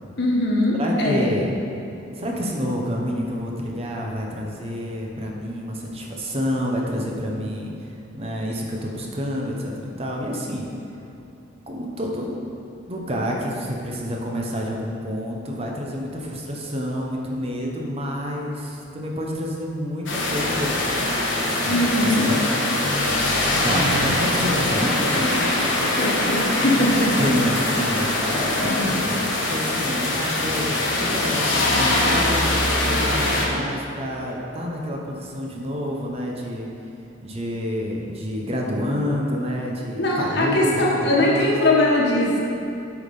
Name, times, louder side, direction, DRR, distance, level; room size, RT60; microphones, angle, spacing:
voice 1, 0.2-1.2 21.6-22.3 26.0-27.1 28.6-29.0 40.0-42.4, left 1 dB, 60° left, -3 dB, 1.5 m, -21 dB
voice 2, 0.8-1.6 2.1-9.7 10.0-10.7 11.7-12.3 12.9-20.9 21.6-22.2 23.6-25.5 27.2-32.6 32.9-36.7 37.2-40.8 41.0-41.6, equal, 30° right, -1 dB, 1.0 m, -28 dB
sound 1, 20.1-33.5, left 1 dB, 80° left, 1.3 m, -22 dB
8.1 x 5.1 x 5.5 m, 2.8 s
head